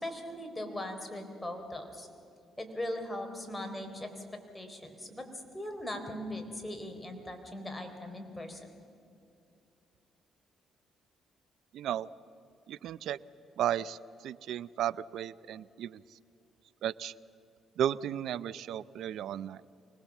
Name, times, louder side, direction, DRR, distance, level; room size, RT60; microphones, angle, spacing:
voice 1, 0.0-2.1 2.6-4.2 4.5-5.3 5.5-8.6, left 1 dB, 10° left, 4 dB, 3.7 m, -39 dB
voice 2, 11.7-12.1 12.7-13.2 13.6-16.0 16.8-17.1 17.8-19.6, right 10 dB, 75° right, 18 dB, 0.5 m, -34 dB
25.0 x 19.5 x 7.3 m, 2.6 s
cardioid pair, 90°, 0 cm